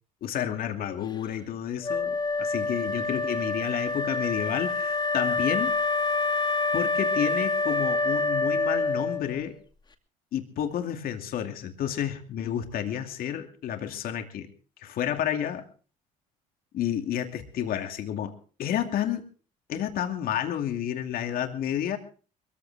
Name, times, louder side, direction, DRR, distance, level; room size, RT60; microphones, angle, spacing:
voice 1, 0.2-5.7 6.7-9.6 10.3-14.5 14.8-15.6 16.7-18.3 18.6-19.2 19.7-22.0, left 10 dB, 60° left, 5 dB, 2.6 m, -30 dB
Wind instrument woodwind instrument, 1.8-9.4, left 3 dB, 25° left, 2.6 m, -27 dB
21.5 x 15.0 x 3.5 m, 0.39 s
supercardioid pair, 70°, 17 cm